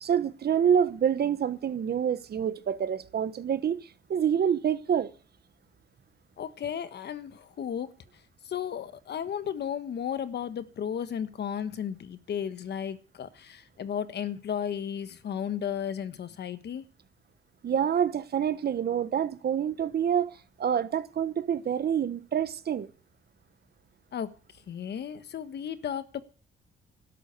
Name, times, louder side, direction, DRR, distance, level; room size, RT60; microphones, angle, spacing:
voice 1, 0.0-3.8 4.1-5.1 17.6-20.3 20.6-22.9, right 8 dB, 55° right, 1.1 m, -27 dB
voice 2, 6.4-7.9 8.4-16.9 24.1-24.3 24.7-26.2, left 8 dB, 60° left, 1.3 m, -34 dB
12.0 x 11.5 x 6.7 m
cardioid pair, 90°, 20 cm